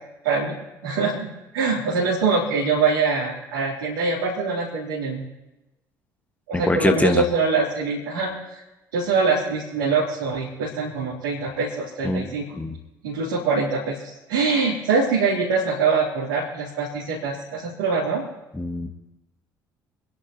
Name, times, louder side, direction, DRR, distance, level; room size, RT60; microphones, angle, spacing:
voice 1, 0.8-5.2 6.5-8.6 8.9-12.5 13.0-18.3, right 4 dB, 75° right, -7 dB, 3.5 m, -24 dB
voice 2, 6.5-7.2 12.0-12.7 18.5-18.9, left 2 dB, 15° left, 6 dB, 1.8 m, -23 dB
28.0 x 10.5 x 3.1 m, 1.0 s
figure-of-eight pair, 55°, 10 cm